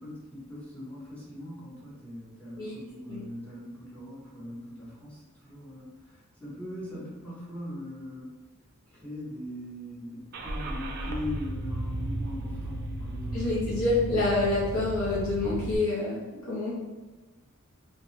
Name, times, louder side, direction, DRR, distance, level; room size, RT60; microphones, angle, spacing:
voice 1, 0.0-8.3 8.9-13.5, left 1 dB, 5° left, -8 dB, 0.9 m, -40 dB
Car / Engine starting, 10.3-15.8, right 1 dB, 45° right, 0.4 m, -34 dB
voice 2, 13.3-16.2 16.5-16.7, left 2 dB, 65° left, -7 dB, 0.8 m, -27 dB
2.7 x 2.2 x 3.1 m, 1.2 s
head